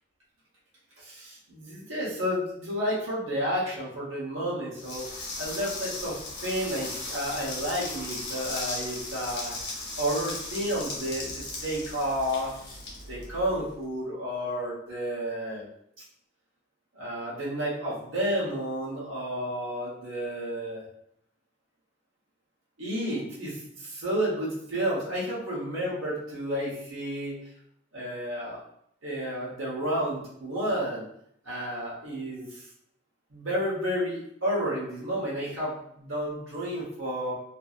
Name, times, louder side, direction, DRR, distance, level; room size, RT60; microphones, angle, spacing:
voice 1, 1.0-5.1 5.4-9.5 10.0-12.5 13.0-15.7 16.9-20.9 22.8-27.4 27.9-28.6 29.0-31.1 31.4-32.7 33.3-37.3, equal, 75° right, -5 dB, 1.0 m, -31 dB
sound 1, 4.8-13.7, left 2 dB, 50° left, 0.9 m, -37 dB
2.6 x 2.6 x 2.4 m, 0.71 s
head